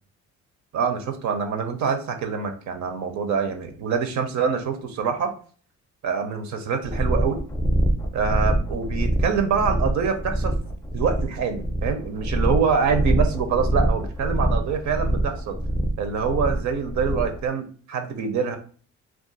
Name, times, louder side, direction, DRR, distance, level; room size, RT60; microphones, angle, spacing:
voice 1, 0.7-5.3 6.0-7.4 8.1-10.5 10.9-15.6 16.0-18.6, right 6 dB, 70° right, 7 dB, 0.6 m, -25 dB
sound 1, 6.8-17.4, right 1 dB, 10° left, 0.5 m, -24 dB
2.4 x 2.3 x 3.8 m, 0.43 s
cardioid pair, 90°, 30 cm